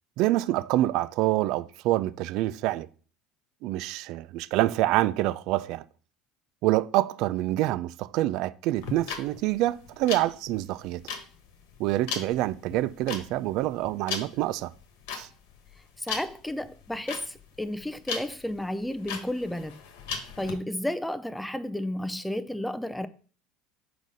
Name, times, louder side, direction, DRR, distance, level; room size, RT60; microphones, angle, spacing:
voice 1, 0.2-2.9 3.6-5.8 6.6-11.0 11.8-14.7 15.1-15.3, right 16 dB, 65° right, 0.3 m, -26 dB
sound 1, 8.8-20.5, left 6 dB, 75° left, 1.2 m, -37 dB
voice 2, 16.0-19.8 20.4-23.1, left 1 dB, 5° left, 0.4 m, -32 dB
4.8 x 3.9 x 5.3 m
supercardioid pair, 100°, 0 cm